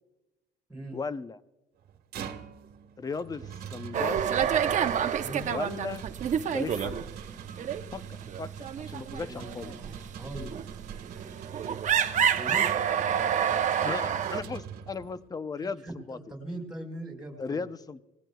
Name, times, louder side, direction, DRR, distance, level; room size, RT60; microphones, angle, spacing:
voice 1, 0.9-1.4 3.0-4.4 5.5-6.0 6.5-7.0 7.9-9.7 13.8-16.2 17.4-18.0, left 4 dB, 20° left, 13 dB, 0.6 m, -36 dB
sound 1, 1.8-15.3, right 8 dB, 65° right, 1.4 m, -43 dB
sound 2, 3.9-7.3 7.5-7.8 8.2-14.4, right 8 dB, 45° right, 0.9 m, -28 dB
voice 2, 9.2-10.5 12.3-12.7 15.8-17.6, right 1 dB, 5° right, 1 dB, 4.5 m, -40 dB
24.5 x 19.5 x 2.3 m, 1.0 s
cardioid pair, 110°, 17 cm